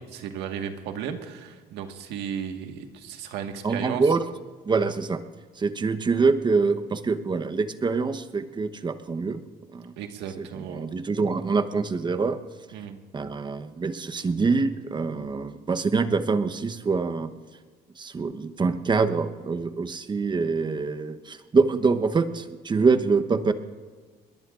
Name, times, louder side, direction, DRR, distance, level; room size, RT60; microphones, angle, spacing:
voice 1, 0.0-4.0 10.0-10.9 12.7-13.0, right 8 dB, 85° right, 5 dB, 1.6 m, -35 dB
voice 2, 3.6-4.2 4.6-5.2 5.6-9.4 9.7-9.9 10.4-12.4 12.8-12.9 13.1-17.3 18.0-23.5, right 4 dB, 25° right, 10 dB, 1.0 m, -25 dB
25.5 x 21.5 x 2.5 m, 1.5 s
cardioid pair, 110°, 17 cm